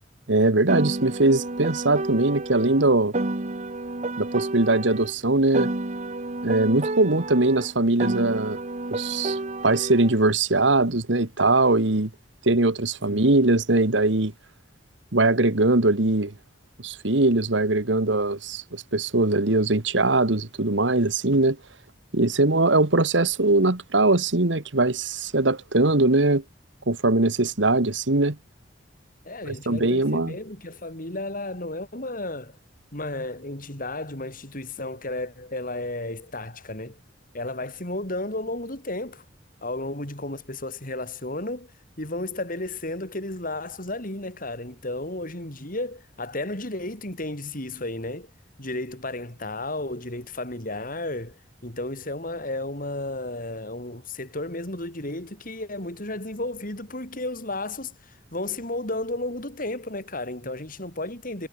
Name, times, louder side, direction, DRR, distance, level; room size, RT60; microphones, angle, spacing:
voice 1, 0.3-3.1 4.2-5.7 6.4-8.6 8.9-12.1 12.4-14.3 15.1-16.3 16.8-21.6 22.1-26.4 26.9-28.4 29.5-30.3, right 2 dB, 70° right, 1.8 m, -21 dB
Piano, 0.7-5.1 5.5-10.1, right 2 dB, 40° right, 1.3 m, -30 dB
voice 2, 29.2-32.6 32.9-37.0 37.3-39.2 39.6-48.3 48.6-61.5, left 2 dB, 45° left, 6.0 m, -33 dB
head